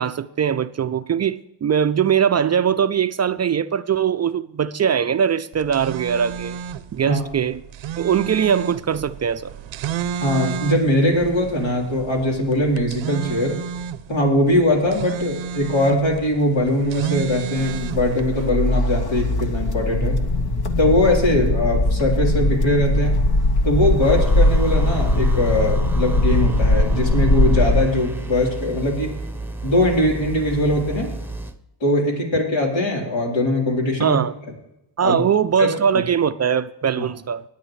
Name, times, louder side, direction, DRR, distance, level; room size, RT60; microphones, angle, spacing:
voice 1, 0.0-6.6 6.9-7.6 8.0-9.5 34.0-34.3 35.0-37.4, right 8 dB, 35° right, 0.4 m, -21 dB
sound 1, 5.5-18.5, right 7 dB, 80° right, 0.7 m, -32 dB
voice 2, 10.2-13.6 14.1-20.2 20.8-23.2 23.6-29.1 29.6-31.1 31.8-34.2 35.0-35.2 35.6-36.0 37.0-37.1, left 1 dB, 75° left, 3.9 m, -21 dB
sound 2, 17.6-27.8, left 1 dB, 55° left, 1.2 m, -20 dB
sound 3, 24.0-31.6, right 2 dB, 5° right, 0.9 m, -32 dB
19.5 x 8.8 x 3.2 m
cardioid pair, 75°, 45 cm